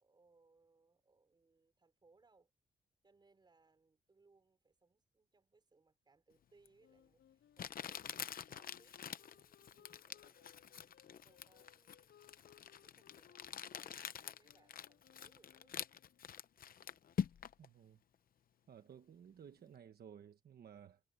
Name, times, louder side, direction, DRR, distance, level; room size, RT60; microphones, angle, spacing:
voice 1, 0.0-2.5 3.0-15.8, right 3 dB, 25° right, 4.5 m, -72 dB
Crumpling crinkling, 6.7-6.8 7.6-17.7, left 8 dB, 55° left, 0.7 m, -46 dB
Wind instrument woodwind instrument, 6.8-16.3, left 9 dB, 85° left, 7.0 m, -68 dB
voice 2, 17.6-18.0 18.7-21.0, right 8 dB, 60° right, 1.1 m, -56 dB
wide cardioid pair, 175°, 18 cm